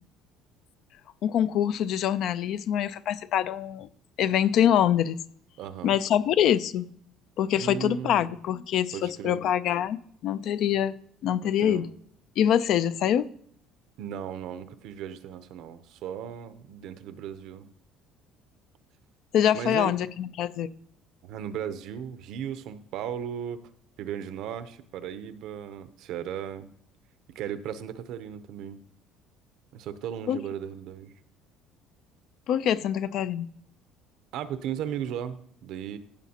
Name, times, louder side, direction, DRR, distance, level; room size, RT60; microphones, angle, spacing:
voice 1, 1.2-3.9 4.2-5.2 5.8-6.9 7.4-11.0 11.2-11.9 12.4-13.3 19.3-20.7 30.3-30.4 32.5-33.5, left 10 dB, 55° left, 0.4 m, -25 dB
voice 2, 5.6-6.0 7.5-8.3 8.9-9.4 11.4-11.9 14.0-17.7 19.5-19.9 21.2-23.6 24.0-26.7 27.3-28.8 29.7-31.1 34.3-36.0, right 9 dB, 65° right, 0.7 m, -36 dB
15.0 x 7.1 x 2.9 m
cardioid pair, 140°, 0 cm